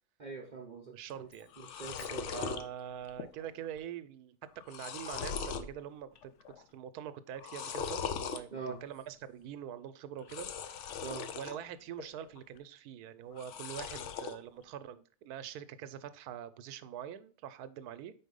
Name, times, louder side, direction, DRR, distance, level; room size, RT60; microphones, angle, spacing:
voice 1, 0.2-1.3 1.6-2.6 8.5-8.8 11.0-11.3, right 4 dB, 45° right, 2 dB, 0.6 m, -43 dB
voice 2, 0.9-1.5 2.3-4.4 4.7-10.9 11.3-18.1, right 9 dB, 85° right, 13 dB, 1.1 m, -44 dB
sound 1, 1.1-1.2 1.4-2.6 3.1-3.5 3.8-3.9 4.4-5.7 6.2-6.6 7.4-8.4 10.2-11.6 12.0-12.6 13.3-14.4, left 7 dB, 65° left, 0.8 m, -40 dB
sound 2, 1.2-3.2, right 1 dB, 40° left, 1.7 m, -59 dB
4.6 x 4.2 x 5.2 m, 0.40 s
omnidirectional pair, 1.6 m